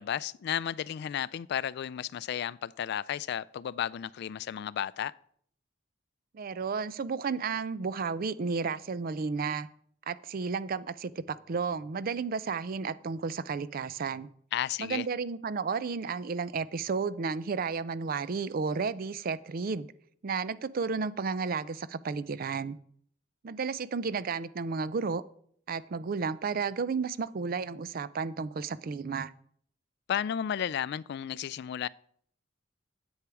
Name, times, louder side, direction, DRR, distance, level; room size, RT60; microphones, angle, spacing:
voice 1, 0.0-5.1 14.5-15.1 30.1-31.9, left 9 dB, 60° left, 0.3 m, -33 dB
voice 2, 6.3-9.7 10.1-14.3 14.8-19.9 20.2-22.8 23.4-25.2 25.7-29.3, right 5 dB, 50° right, 0.4 m, -32 dB
10.0 x 8.1 x 4.8 m
head